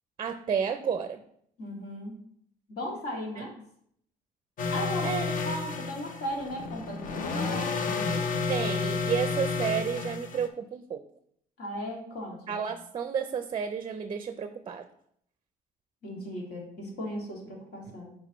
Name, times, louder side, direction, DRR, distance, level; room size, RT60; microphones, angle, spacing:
voice 1, 0.2-1.2 3.4-3.5 5.0-5.3 8.5-11.0 12.5-14.9, right 7 dB, 30° right, 9 dB, 0.4 m, -31 dB
voice 2, 1.6-2.1 2.7-3.6 4.7-5.1 5.4-8.3 11.6-12.6 16.0-18.1, equal, 70° left, -2 dB, 2.3 m, -37 dB
sound 1, 4.6-10.5, left 4 dB, 55° left, 0.7 m, -31 dB
8.2 x 4.7 x 3.1 m, 0.70 s
cardioid pair, 110°, 17 cm